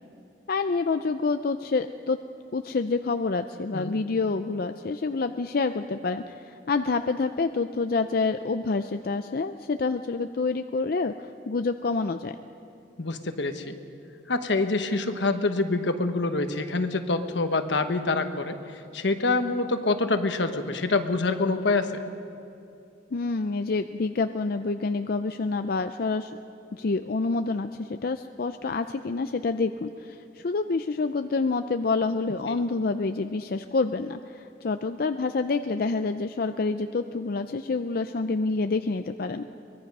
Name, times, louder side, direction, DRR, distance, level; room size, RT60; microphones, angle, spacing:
voice 1, 0.5-2.2 2.5-12.4 23.1-26.3 26.7-39.5, left 3 dB, 55° left, 8 dB, 0.5 m, -27 dB
voice 2, 13.0-13.8 14.3-21.9 32.5-32.6, left 3 dB, 80° left, 7 dB, 1.2 m, -26 dB
23.5 x 20.5 x 5.4 m, 2.6 s
head